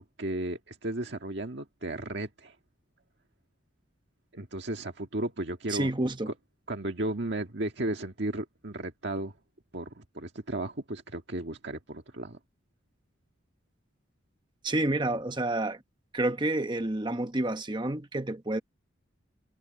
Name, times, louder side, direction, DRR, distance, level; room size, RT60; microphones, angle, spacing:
voice 1, 0.0-2.6 4.3-5.9 6.3-6.4 6.7-9.3 9.7-12.4, right 1 dB, 60° right, 1.7 m, -34 dB
voice 2, 5.7-6.3 14.6-15.8 16.1-18.6, right 1 dB, 25° right, 1.2 m, -29 dB
head